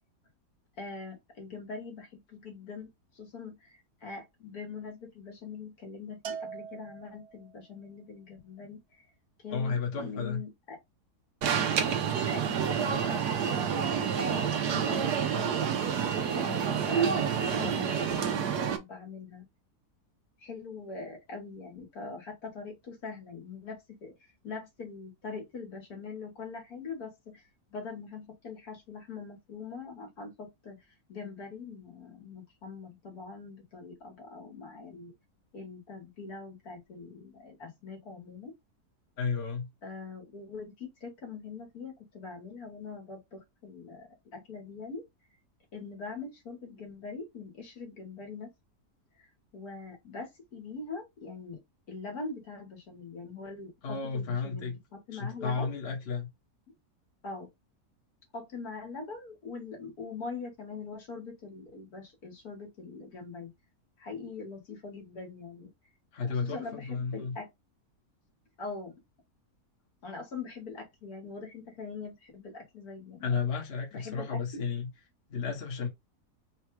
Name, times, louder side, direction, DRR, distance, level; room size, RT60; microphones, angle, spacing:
voice 1, 0.8-8.8 9.4-10.8 12.1-15.6 16.3-19.5 20.4-24.1 24.4-27.4 27.7-30.8 31.1-35.1 35.5-38.5 39.8-45.0 45.7-48.5 49.5-51.6 51.9-55.7 57.2-57.5 58.3-63.5 64.0-65.7 66.2-67.5 68.6-68.9 70.0-73.4 73.9-74.6, left 4 dB, 70° left, 2.1 m, -42 dB
Bell, 6.2-7.6, right 7 dB, 60° right, 0.7 m, -41 dB
voice 2, 9.5-10.4 39.2-39.7 53.8-54.8 55.1-56.3 66.1-67.3 73.2-74.9 75.3-75.9, left 5 dB, 40° left, 1.3 m, -32 dB
Alarm, 11.4-18.8, right 7 dB, 80° right, 1.3 m, -28 dB
4.4 x 2.3 x 4.6 m
omnidirectional pair, 1.7 m